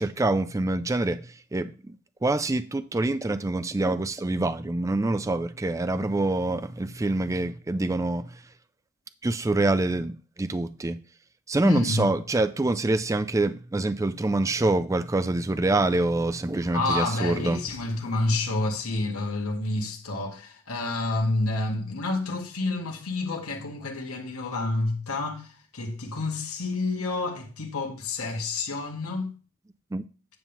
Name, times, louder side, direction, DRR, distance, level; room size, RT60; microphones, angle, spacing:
voice 1, 0.0-2.0 2.2-8.4 9.2-11.0 11.5-17.6 29.9-30.0, right 2 dB, 15° right, 0.3 m, -26 dB
voice 2, 11.6-12.1 16.6-29.4, left 2 dB, 75° left, 1.7 m, -29 dB
9.7 x 3.5 x 7.1 m
head